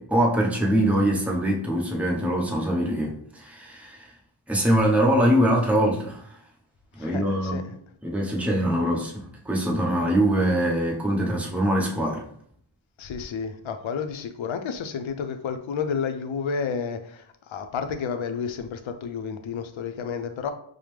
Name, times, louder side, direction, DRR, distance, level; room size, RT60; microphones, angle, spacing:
voice 1, 0.0-4.1 4.5-6.4 7.0-7.6 8.0-12.2, right 1 dB, 5° right, -2 dB, 0.8 m, -23 dB
voice 2, 7.0-7.6 13.0-17.2 17.5-20.5, left 6 dB, 70° left, 7 dB, 0.5 m, -31 dB
4.9 x 2.1 x 3.2 m, 0.64 s
wide cardioid pair, 75°, 49 cm